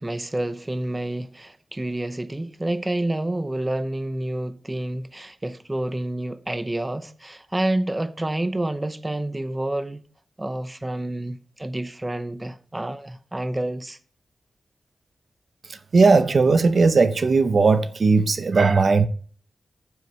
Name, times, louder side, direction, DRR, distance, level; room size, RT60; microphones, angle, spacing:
voice 1, 0.0-10.0 10.4-14.0, right 1 dB, 20° right, 0.7 m, -28 dB
voice 2, 15.9-19.1, right 4 dB, 60° right, 0.7 m, -17 dB
9.8 x 8.0 x 3.2 m
wide cardioid pair, 85°, 0 cm